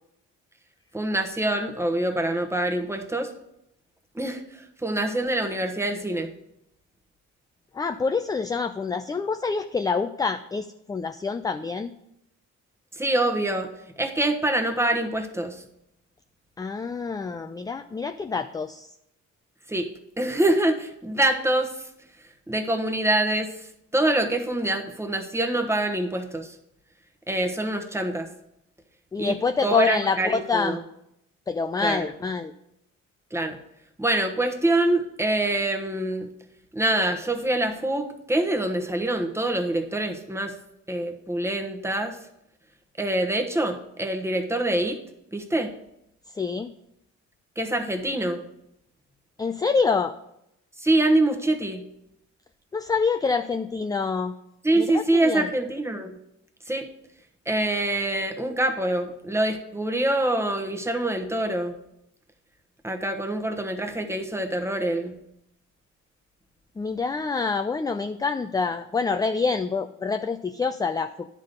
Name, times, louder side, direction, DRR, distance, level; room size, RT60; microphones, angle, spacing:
voice 1, 0.9-3.3 4.1-6.3 12.9-13.7 14.0-15.6 19.7-19.9 20.2-21.9 22.5-26.6 27.3-28.3 29.2-29.3 29.6-30.8 31.8-32.1 33.3-33.6 34.0-36.3 36.7-40.5 40.9-42.2 43.0-45.0 45.3-45.7 47.6-48.4 50.8-51.8 54.6-56.1 56.7-56.9 57.5-61.8 62.8-65.2, right 1 dB, 10° right, 5 dB, 1.0 m, -25 dB
voice 2, 7.7-11.9 16.6-18.9 29.1-30.8 31.5-32.5 46.3-46.7 49.4-50.1 52.7-54.3 54.8-55.5 66.8-71.3, left 4 dB, 15° left, 8 dB, 0.3 m, -26 dB
10.0 x 3.7 x 6.6 m, 0.80 s
cardioid pair, 90°, 30 cm